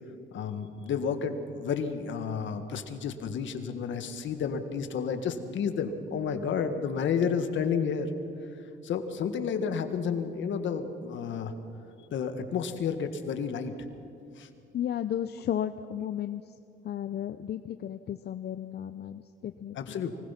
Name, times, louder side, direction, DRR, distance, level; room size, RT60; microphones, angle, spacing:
voice 1, 0.3-8.1 8.8-11.5 12.1-13.7 14.4-14.5 19.7-20.1, left 6 dB, 70° left, 8 dB, 1.8 m, -31 dB
voice 2, 14.7-16.5 16.8-20.0, left 10 dB, 55° left, 10 dB, 0.6 m, -34 dB
24.0 x 20.0 x 5.9 m, 2.6 s
cardioid pair, 90°, 20 cm